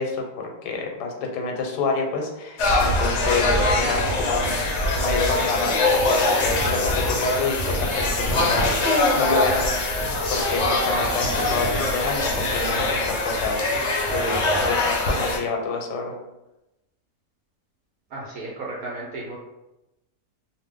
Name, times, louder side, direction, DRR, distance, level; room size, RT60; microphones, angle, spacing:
voice 1, 0.0-8.7 9.2-9.8 10.3-13.6 14.1-16.1, left 4 dB, 85° left, 2 dB, 1.2 m, -28 dB
sound 1, 2.6-15.4, left 2 dB, 60° left, 0.7 m, -23 dB
voice 2, 18.1-19.4, right 2 dB, 70° right, -4 dB, 1.0 m, -34 dB
2.6 x 2.1 x 3.4 m, 0.94 s
omnidirectional pair, 1.8 m